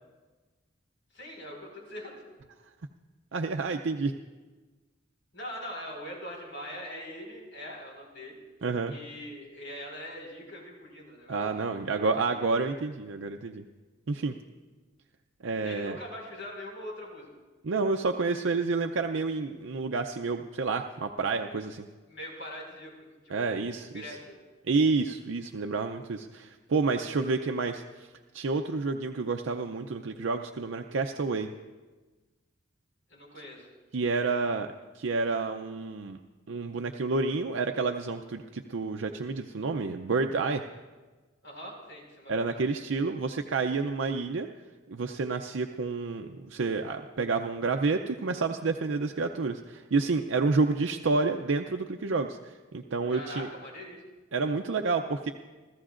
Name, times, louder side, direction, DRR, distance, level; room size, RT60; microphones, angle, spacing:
voice 1, 1.1-2.2 5.3-8.4 8.9-11.4 11.7-12.5 15.6-17.3 22.1-24.4 33.1-33.7 41.4-42.6 53.1-54.0, left 1 dB, 70° left, -1 dB, 5.0 m, -42 dB
voice 2, 3.3-4.1 8.6-8.9 11.3-13.6 14.1-14.4 15.4-16.0 17.6-21.9 23.3-24.1 24.7-27.8 28.3-31.5 33.9-36.2 36.5-40.6 42.3-44.5 44.9-53.5 54.3-55.3, right 4 dB, 75° right, 4 dB, 0.6 m, -29 dB
27.5 x 14.5 x 2.5 m, 1.3 s
head